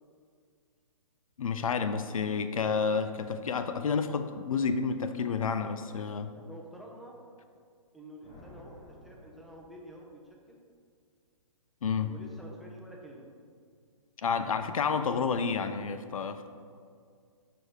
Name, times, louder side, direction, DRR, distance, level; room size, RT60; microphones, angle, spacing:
voice 1, 1.4-6.3 11.8-12.1 14.2-16.5, left 5 dB, 75° left, 10 dB, 0.5 m, -30 dB
voice 2, 6.3-7.2 7.9-10.6 12.0-13.3, equal, ahead, -2 dB, 0.6 m, -49 dB
sound 1, 8.2-10.2, left 1 dB, 20° left, 1.4 m, -53 dB
5.9 x 4.8 x 4.9 m, 2.2 s
hypercardioid pair, 135°, 18 cm